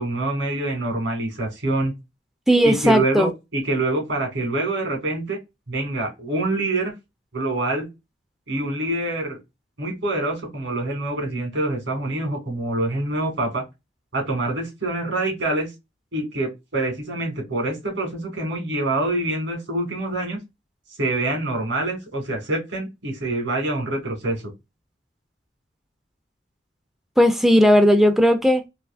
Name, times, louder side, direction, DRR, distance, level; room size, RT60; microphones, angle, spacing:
voice 1, 0.0-1.9 2.6-5.4 5.7-6.9 7.3-7.9 8.5-9.4 9.8-13.6 14.1-15.7 16.1-20.4 21.0-24.5, right 2 dB, 85° right, 1.8 m, -25 dB
voice 2, 2.5-3.3 27.2-28.6, equal, ahead, 0.4 m, -16 dB
3.4 x 2.8 x 2.4 m
head